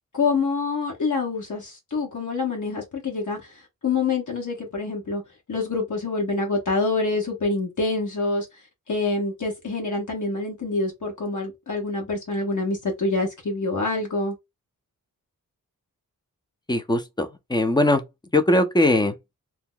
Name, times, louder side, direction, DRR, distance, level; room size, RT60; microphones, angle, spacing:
voice 1, 0.1-5.2 5.5-8.5 8.9-14.3, left 3 dB, 60° left, 1.2 m, -26 dB
voice 2, 16.7-18.0 18.3-19.2, left 1 dB, 10° left, 0.6 m, -20 dB
2.8 x 2.0 x 3.7 m
cardioid pair, 65°, 34 cm